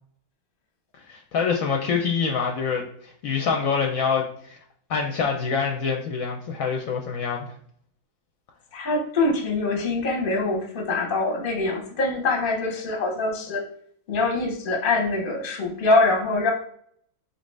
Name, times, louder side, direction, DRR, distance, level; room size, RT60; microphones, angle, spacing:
voice 1, 1.1-4.6 4.9-7.5, left 5 dB, 70° left, 2 dB, 0.9 m, -26 dB
voice 2, 8.7-13.6 14.1-16.5, left 2 dB, 40° left, 2 dB, 0.9 m, -24 dB
4.0 x 3.0 x 3.2 m, 0.63 s
omnidirectional pair, 1.6 m